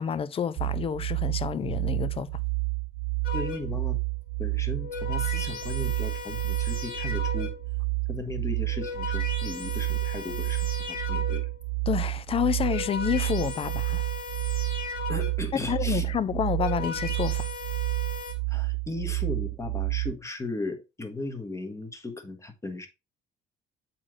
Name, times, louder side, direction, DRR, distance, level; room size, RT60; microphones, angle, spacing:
voice 1, 0.0-2.3 11.9-14.1 15.7-17.5, left 8 dB, 35° left, 0.5 m, -29 dB
sound 1, 0.6-20.1, right 31 dB, 90° right, 0.5 m, -30 dB
sound 2, 3.2-3.9 4.6-7.8 8.5-11.7 12.4-15.6 16.3-18.3, left 5 dB, 60° left, 2.1 m, -37 dB
voice 2, 3.3-4.0 4.4-7.5 8.1-11.5 15.1-16.0 18.5-22.9, left 2 dB, 15° left, 1.2 m, -36 dB
7.4 x 4.3 x 3.0 m
cardioid pair, 110°, 17 cm